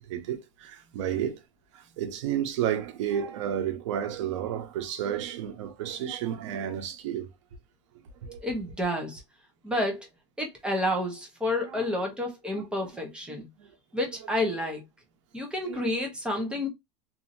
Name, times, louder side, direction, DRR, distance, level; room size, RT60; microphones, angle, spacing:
voice 1, 0.0-1.4 1.7-7.3 8.2-8.4 11.7-11.8 12.5-12.6 13.3-13.7 15.7-15.9, right 10 dB, 85° right, 0.8 m, -32 dB
voice 2, 8.4-9.2 9.6-10.1 10.4-13.5 13.9-14.8 15.3-16.7, left 1 dB, 5° right, 0.9 m, -30 dB
2.8 x 2.7 x 2.6 m
supercardioid pair, 150°, 15 cm